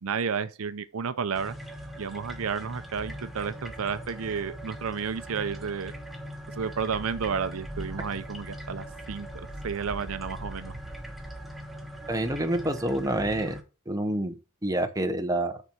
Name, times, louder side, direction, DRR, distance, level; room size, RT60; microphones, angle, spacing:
voice 1, 0.0-1.6 2.0-5.9 6.5-10.8, right 6 dB, 70° right, 0.6 m, -32 dB
sound 1, 1.4-13.6, equal, ahead, 1.1 m, -40 dB
voice 2, 12.1-13.6 13.9-14.4 14.6-15.6, right 1 dB, 15° right, 0.8 m, -27 dB
6.7 x 4.4 x 6.1 m
head